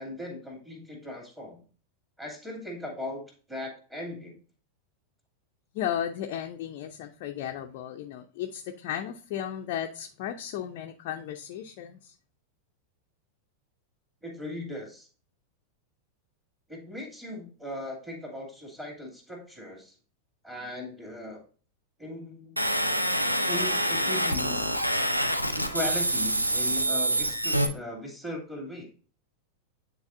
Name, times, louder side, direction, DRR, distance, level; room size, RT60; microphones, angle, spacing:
voice 1, 0.0-1.6 2.2-4.4 14.2-15.1 16.7-19.9 20.4-21.4 22.0-22.6 23.5-24.7 25.5-28.9, left 1 dB, 10° right, -2 dB, 2.3 m, -38 dB
voice 2, 5.7-12.1, left 10 dB, 50° left, 3 dB, 0.6 m, -35 dB
sound 1, 22.6-27.7, right 1 dB, 90° right, 0.6 m, -26 dB
9.6 x 4.0 x 2.6 m, 0.38 s
figure-of-eight pair, 90°, 0 cm